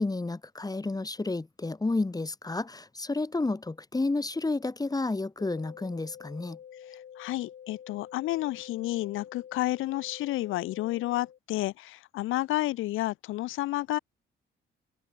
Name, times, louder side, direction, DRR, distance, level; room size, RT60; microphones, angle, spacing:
voice 1, 0.0-6.6, left 3 dB, 20° left, 5.3 m, -31 dB
sound 1, 5.4-11.4, left 9 dB, 60° left, 6.3 m, -48 dB
voice 2, 6.9-14.0, left 17 dB, 90° left, 1.3 m, -31 dB
cardioid pair, 90°, 20 cm